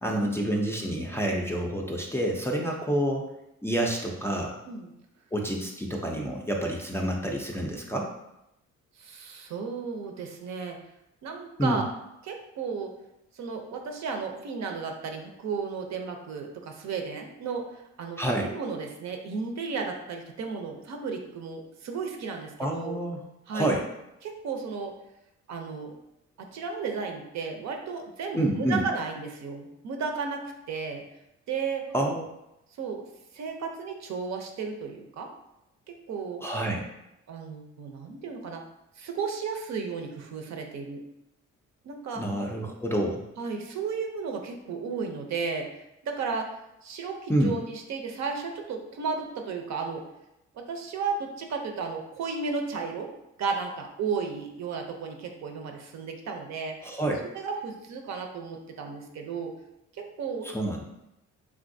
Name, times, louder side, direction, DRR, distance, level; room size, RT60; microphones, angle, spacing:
voice 1, 0.0-3.3 3.6-4.6 5.3-8.1 11.6-11.8 18.2-18.5 22.6-23.2 23.5-23.8 28.3-28.8 31.9-32.2 36.4-36.8 42.2-43.2 47.3-47.5 56.8-57.2 60.4-60.9, right 1 dB, 10° left, -2 dB, 0.4 m, -28 dB
voice 2, 9.0-10.8 11.2-11.9 12.2-12.9 13.3-23.0 23.5-23.7 24.2-24.9 25.5-26.0 26.4-30.4 30.7-31.1 31.5-31.8 32.8-33.0 33.3-35.3 35.9-36.4 37.3-38.6 39.0-41.0 41.8-42.2 43.4-46.5 46.8-50.1 50.5-53.1 53.4-56.9 57.3-59.5 59.9-60.5, right 5 dB, 65° right, 3 dB, 0.6 m, -34 dB
3.3 x 2.6 x 2.6 m, 0.87 s
cardioid pair, 90°, 30 cm